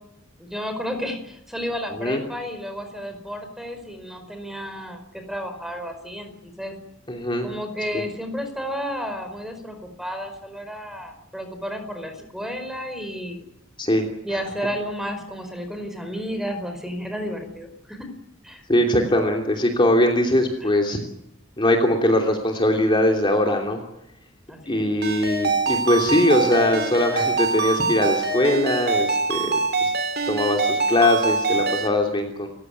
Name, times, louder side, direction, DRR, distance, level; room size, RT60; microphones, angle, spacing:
voice 1, 0.4-6.7 7.4-13.4 14.2-18.0 18.4-18.6 24.5-24.9, equal, ahead, 7 dB, 4.8 m, -32 dB
voice 2, 7.1-7.5 7.9-8.0 13.8-14.1 18.7-21.0 21.6-23.8 24.7-29.9 30.3-32.5, left 1 dB, 25° left, 2 dB, 3.0 m, -21 dB
Ringtone, 25.0-31.9, right 4 dB, 55° right, 3.1 m, -24 dB
29.5 x 16.0 x 9.4 m, 0.83 s
head